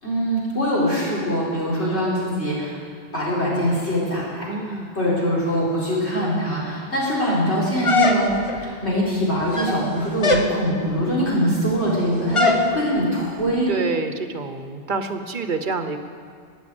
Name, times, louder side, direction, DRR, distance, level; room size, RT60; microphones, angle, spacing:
voice 1, 0.0-2.8 3.1-4.5 4.9-8.3 8.6-13.7, equal, 90° left, -7 dB, 5.0 m, -23 dB
voice 2, 4.5-4.9 13.7-16.0, right 4 dB, 50° right, 8 dB, 1.0 m, -27 dB
sound 1, 7.8-8.6 9.4-9.8 10.2-10.5 12.4-12.7, left 3 dB, 30° left, 1.1 m, -20 dB
14.0 x 9.3 x 8.7 m, 2.2 s
omnidirectional pair, 1.1 m